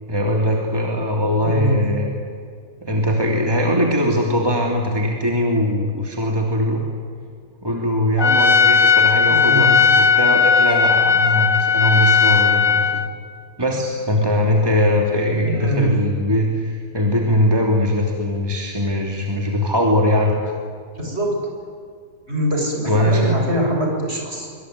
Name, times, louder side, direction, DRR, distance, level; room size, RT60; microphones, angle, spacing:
voice 1, 0.1-2.1 2.8-6.8 7.6-13.0 13.6-20.3 22.9-23.4, left 1 dB, 15° right, 0 dB, 3.0 m, -20 dB
voice 2, 1.4-1.8 9.3-9.7 15.4-15.9 21.0-21.4 22.3-24.5, equal, 45° right, 0 dB, 7.4 m, -23 dB
Trumpet, 8.2-13.1, left 5 dB, 40° left, 1.3 m, -16 dB
25.5 x 25.0 x 9.6 m, 2.1 s
omnidirectional pair, 1.5 m